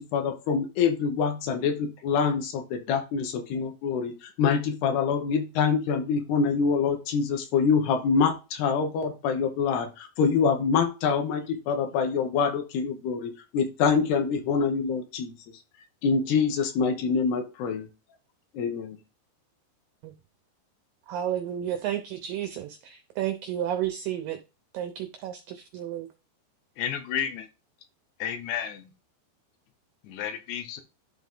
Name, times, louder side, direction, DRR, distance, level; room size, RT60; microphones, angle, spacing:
voice 1, 0.0-15.3 16.0-17.9 18.5-19.0, left 6 dB, 75° left, 6 dB, 2.9 m, -25 dB
voice 2, 21.1-24.4 24.7-26.1, right 11 dB, 85° right, 7 dB, 1.9 m, -32 dB
voice 3, 26.8-27.5 28.2-28.9 30.0-30.8, left 9 dB, 90° left, 8 dB, 3.4 m, -32 dB
11.5 x 3.8 x 3.7 m, 0.30 s
omnidirectional pair, 4.9 m